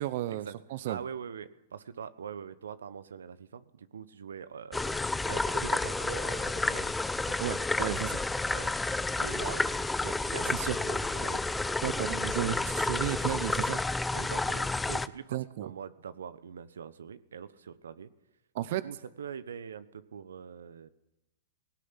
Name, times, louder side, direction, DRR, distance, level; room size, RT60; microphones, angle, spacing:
voice 1, 0.0-1.0 7.4-8.2 10.5-10.8 11.8-13.8 15.3-15.7 18.5-18.8, right 14 dB, 60° right, 15 dB, 0.9 m, -33 dB
voice 2, 0.8-5.0 5.3-7.4 8.5-8.7 9.2-11.4 14.1-18.1 18.7-20.9, right 7 dB, 85° right, 14 dB, 1.1 m, -43 dB
sound 1, 4.7-15.1, left 2 dB, 10° left, 0.7 m, -30 dB
18.0 x 17.0 x 9.8 m, 0.90 s
hypercardioid pair, 115°, 0 cm